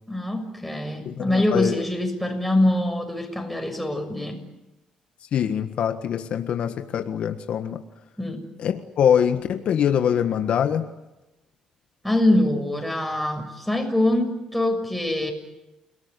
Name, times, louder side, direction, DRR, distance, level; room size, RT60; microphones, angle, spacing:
voice 1, 0.1-4.4 8.2-8.4 12.0-15.3, left 1 dB, ahead, 3 dB, 6.7 m, -24 dB
voice 2, 1.0-1.8 5.3-7.8 8.6-10.9, left 8 dB, 65° left, 7 dB, 1.5 m, -23 dB
29.0 x 19.0 x 9.8 m, 0.97 s
cardioid pair, 105°, 2 cm